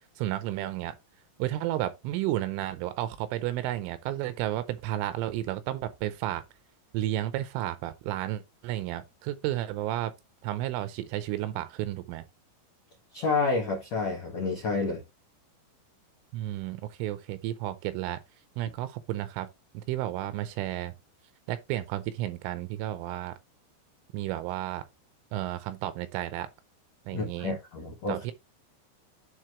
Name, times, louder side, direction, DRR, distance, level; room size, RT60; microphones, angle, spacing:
voice 1, 0.2-1.0 1.4-6.4 6.9-10.1 10.4-12.2 16.3-18.2 18.6-19.5 19.7-20.9 21.5-23.3 24.1-24.8 25.3-26.5 27.1-27.6 28.1-28.3, right 14 dB, 80° right, 3.1 m, -32 dB
voice 2, 13.1-15.0 27.1-28.2, left 3 dB, 80° left, 1.5 m, -29 dB
11.5 x 3.9 x 3.0 m
omnidirectional pair, 5.9 m